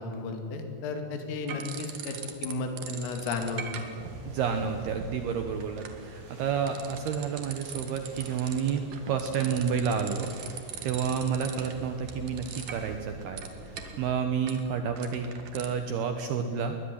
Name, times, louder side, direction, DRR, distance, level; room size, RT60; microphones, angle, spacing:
voice 1, 0.0-3.6, left 3 dB, 75° left, 5 dB, 5.0 m, -34 dB
sound 1, 1.5-2.5 2.8-15.7, right 6 dB, 55° right, 2.7 m, -42 dB
sound 2, 3.0-14.2, right 1 dB, 30° right, 4.8 m, -50 dB
voice 2, 4.3-10.3 10.8-16.8, right 7 dB, 70° right, 6 dB, 2.4 m, -30 dB
21.5 x 20.0 x 9.9 m, 2.6 s
omnidirectional pair, 5.9 m